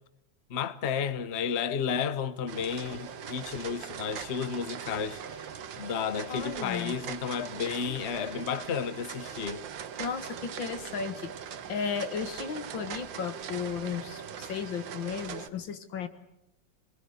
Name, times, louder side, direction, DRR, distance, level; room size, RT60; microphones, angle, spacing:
voice 1, 0.5-5.4 5.8-9.6, left 7 dB, 40° left, 1.1 m, -32 dB
sound 1, 2.5-15.5, right 8 dB, 75° right, 1.8 m, -41 dB
voice 2, 6.3-7.0 10.0-11.3 11.7-16.1, left 6 dB, 80° left, 2.4 m, -34 dB
26.5 x 20.5 x 7.9 m
omnidirectional pair, 2.1 m